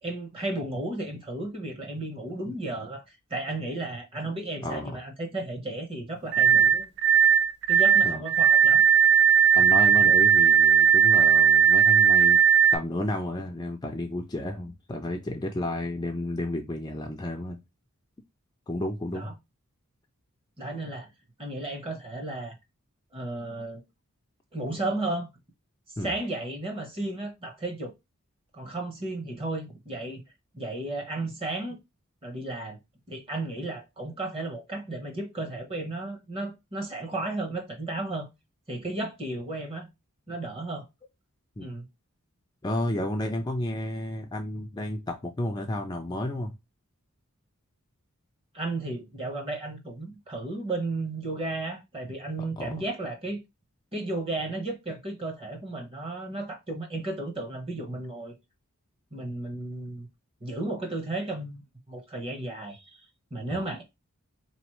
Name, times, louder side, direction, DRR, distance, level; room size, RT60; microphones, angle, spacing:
voice 1, 0.0-3.0 3.3-6.9 7.7-8.8 19.1-19.3 20.6-21.1 21.4-22.6 23.1-23.8 24.5-25.3 26.0-27.9 28.5-30.2 30.5-31.8 32.2-32.8 33.1-38.3 38.7-39.9 40.3-40.9 41.6-41.9 48.5-53.4 53.9-58.3 59.1-60.1 60.4-61.6 61.9-63.0 63.3-63.8, right 2 dB, 25° right, 1.0 m, -34 dB
voice 2, 4.6-5.0 8.0-8.2 9.5-12.4 12.7-17.6 18.7-19.3 26.0-26.1 41.6-41.7 42.6-46.5 52.6-52.8 63.5-63.7, left 1 dB, 20° left, 0.4 m, -32 dB
sound 1, 6.3-12.8, right 7 dB, 55° right, 0.5 m, -18 dB
4.0 x 3.0 x 3.0 m
head